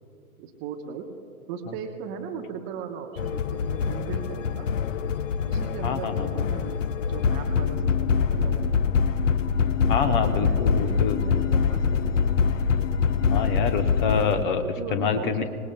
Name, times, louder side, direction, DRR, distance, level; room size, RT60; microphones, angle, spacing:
voice 1, 0.4-1.1 1.5-4.7 5.5-8.7 9.8-12.3 14.8-15.4, right 7 dB, 20° right, 4 dB, 0.7 m, -38 dB
sound 1, 3.2-14.4, left 6 dB, 60° left, 0.7 m, -24 dB
voice 2, 5.8-6.5 9.9-11.2 13.3-14.6 14.9-15.4, left 6 dB, 35° left, 9 dB, 0.9 m, -26 dB
25.0 x 19.0 x 2.2 m, 2.6 s
figure-of-eight pair, 115°, 44 cm